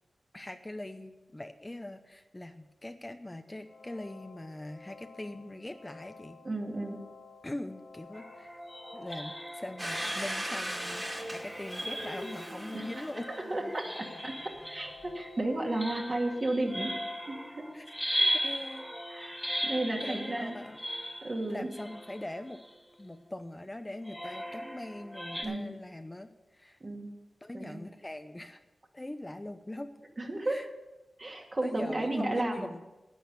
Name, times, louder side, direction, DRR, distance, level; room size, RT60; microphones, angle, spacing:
voice 1, 0.3-6.4 7.4-8.6 8.9-13.3 15.9-16.0 17.7-17.9 18.3-18.9 20.0-20.8 21.5-22.6 23.0-26.8 27.4-28.6 28.9-29.9 30.4-30.7 31.6-32.8, left 1 dB, 20° left, 7 dB, 0.7 m, -42 dB
sound 1, 3.6-15.4, left 4 dB, 85° left, 2.9 m, -53 dB
voice 2, 6.4-7.0 12.7-12.8 13.3-14.4 14.7-17.0 17.3-17.7 18.1-18.3 19.1-19.4 19.6-20.6 21.2-21.7 25.4-25.7 26.8-27.1 27.5-27.8 30.2-30.7 31.2-32.7, right 2 dB, 40° right, 1 dB, 2.3 m, -33 dB
sound 2, 8.1-23.0 24.0-25.4, equal, 5° right, 2.1 m, -38 dB
Domestic sounds home sounds, 9.8-14.4, right 1 dB, 20° right, 2.4 m, -39 dB
10.5 x 9.2 x 6.9 m, 1.0 s
wide cardioid pair, 70°, 0 cm